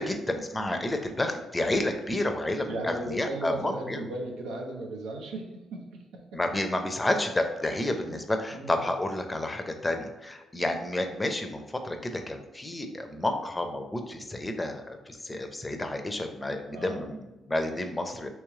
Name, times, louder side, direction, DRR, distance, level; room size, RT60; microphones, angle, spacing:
voice 1, 0.0-4.0 6.3-18.3, left 1 dB, 15° left, 5 dB, 0.5 m, -30 dB
voice 2, 2.6-6.4 8.1-8.2 8.5-8.8 16.7-17.0, right 2 dB, 90° right, 1 dB, 0.7 m, -36 dB
3.1 x 3.0 x 3.6 m, 1.1 s
cardioid pair, 90°, 0 cm